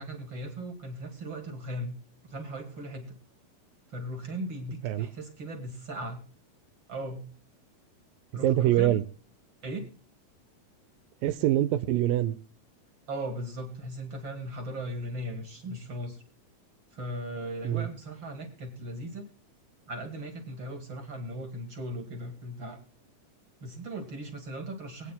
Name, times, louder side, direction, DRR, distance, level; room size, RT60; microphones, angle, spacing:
voice 1, 0.0-1.9 2.2-3.1 3.9-6.2 6.9-7.2 8.3-8.9 9.6-9.9 13.1-16.2 16.9-19.3 19.9-22.8 23.6-25.1, right 1 dB, 50° right, 3 dB, 1.5 m, -38 dB
voice 2, 8.4-9.0 11.2-12.4 17.6-17.9, right 13 dB, 80° right, 14 dB, 2.2 m, -24 dB
23.0 x 8.8 x 2.3 m, 0.43 s
omnidirectional pair, 4.3 m